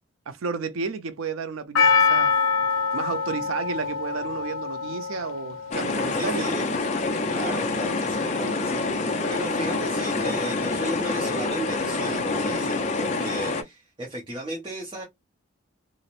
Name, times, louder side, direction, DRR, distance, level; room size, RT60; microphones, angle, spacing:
voice 1, 0.3-2.3 2.9-6.5, right 5 dB, 85° right, 0.5 m, -32 dB
Percussion, 1.8-6.1 6.4-6.5, left 5 dB, 85° left, 0.5 m, -24 dB
sound 1, 5.7-13.6, left 3 dB, 35° left, 0.4 m, -26 dB
voice 2, 6.2-6.7 7.3-15.1, right 1 dB, 25° right, 0.5 m, -35 dB
2.9 x 2.0 x 2.4 m
head